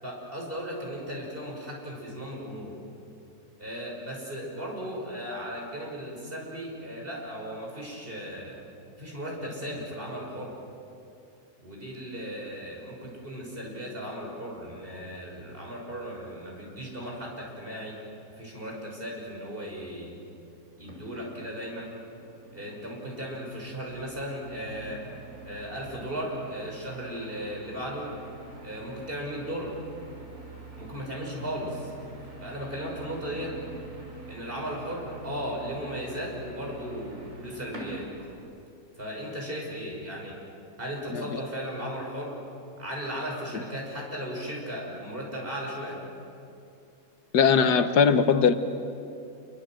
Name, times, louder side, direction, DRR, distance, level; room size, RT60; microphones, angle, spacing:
voice 1, 0.0-2.7 3.6-8.6 9.0-10.5 11.6-18.0 18.3-20.2 20.8-21.9 22.5-25.0 25.4-28.1 28.6-29.8 30.8-31.9 32.4-33.5 34.3-38.1 39.0-40.4 40.8-42.4 42.8-46.0, equal, 35° right, -2 dB, 6.3 m, -36 dB
sound 1, 20.8-38.4, right 2 dB, 50° right, 5.3 m, -46 dB
voice 2, 47.3-48.5, left 6 dB, 90° left, 9 dB, 1.7 m, -20 dB
28.0 x 23.5 x 7.7 m, 2.7 s
omnidirectional pair, 1.7 m